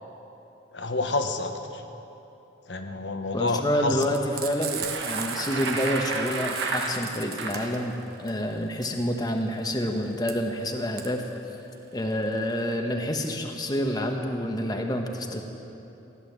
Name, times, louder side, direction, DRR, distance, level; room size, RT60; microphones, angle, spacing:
voice 1, 0.7-1.5 2.7-4.0, left 3 dB, 75° left, 6 dB, 1.1 m, -28 dB
voice 2, 3.3-11.2 11.9-15.4, equal, 20° left, 3 dB, 1.1 m, -28 dB
Frying (food), 4.0-12.7, right 8 dB, 55° right, 1.2 m, -38 dB
Bicycle, 4.5-7.8, right 3 dB, 80° right, 1.6 m, -32 dB
16.0 x 11.5 x 7.4 m, 3.0 s
head